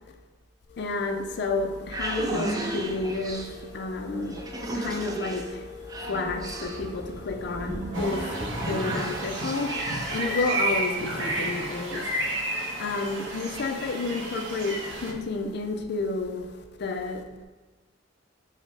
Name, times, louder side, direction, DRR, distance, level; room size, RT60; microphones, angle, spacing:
voice 1, 0.7-12.1 12.8-17.2, left 3 dB, 60° left, 0.4 m, -31 dB
sound 1, 1.5-10.4, right 2 dB, 20° right, 0.4 m, -34 dB
sound 2, 7.9-15.1, right 1 dB, 80° right, 0.7 m, -31 dB
4.9 x 2.1 x 4.0 m
head